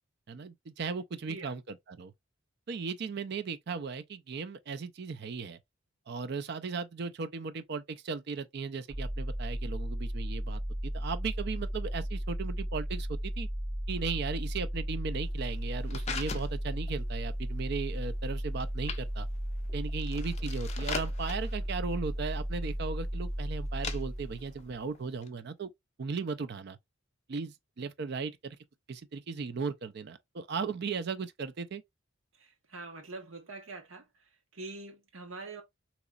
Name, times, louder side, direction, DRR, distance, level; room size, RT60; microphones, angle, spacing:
voice 1, 0.3-2.1 2.7-5.6 6.1-13.5 13.9-19.3 19.7-25.7 26.0-26.8 27.3-28.6 28.9-31.8, right 5 dB, 50° right, 0.4 m, -37 dB
sound 1, 8.9-24.7, equal, 10° left, 2.2 m, -35 dB
sound 2, 15.2-25.3, left 6 dB, 30° left, 0.5 m, -44 dB
voice 2, 32.4-34.0 34.5-35.6, right 3 dB, 70° right, 1.1 m, -44 dB
3.9 x 3.0 x 2.4 m
head